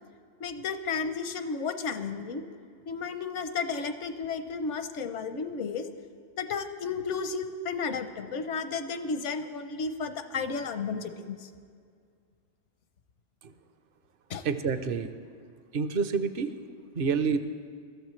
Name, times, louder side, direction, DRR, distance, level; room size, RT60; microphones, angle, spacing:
voice 1, 0.4-2.5 2.9-5.9 6.4-11.5 14.3-14.4, left 5 dB, 80° left, 9 dB, 1.1 m, -33 dB
voice 2, 14.4-15.1 15.7-16.6 16.9-17.4, right 5 dB, 55° right, 10 dB, 0.8 m, -28 dB
21.5 x 13.5 x 3.2 m, 2.2 s
omnidirectional pair, 1.2 m